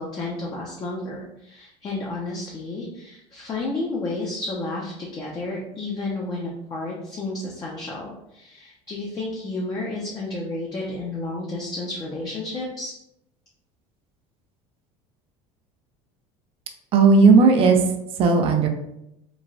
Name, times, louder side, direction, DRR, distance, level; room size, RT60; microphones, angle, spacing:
voice 1, 0.0-12.9, left 2 dB, 30° left, -3 dB, 0.5 m, -31 dB
voice 2, 16.9-18.7, right 4 dB, 45° right, 5 dB, 0.4 m, -16 dB
3.0 x 2.2 x 2.5 m, 0.82 s
cardioid pair, 130°, 14 cm